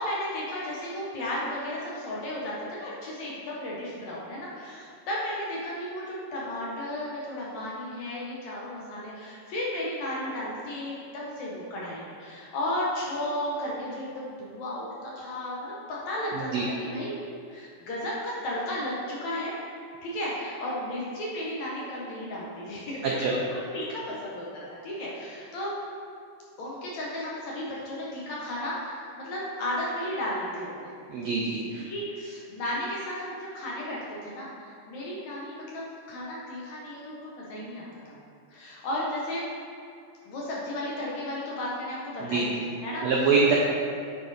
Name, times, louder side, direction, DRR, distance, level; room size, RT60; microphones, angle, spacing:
voice 1, 0.0-19.5 20.0-25.8 26.6-30.9 31.9-38.2 38.5-39.4 40.3-43.5, left 1 dB, 65° left, -5 dB, 2.0 m, -34 dB
voice 2, 31.1-31.8 42.2-42.4 43.0-43.5, right 5 dB, 85° right, -3 dB, 1.4 m, -24 dB
9.4 x 4.2 x 4.0 m, 2.4 s
omnidirectional pair, 3.9 m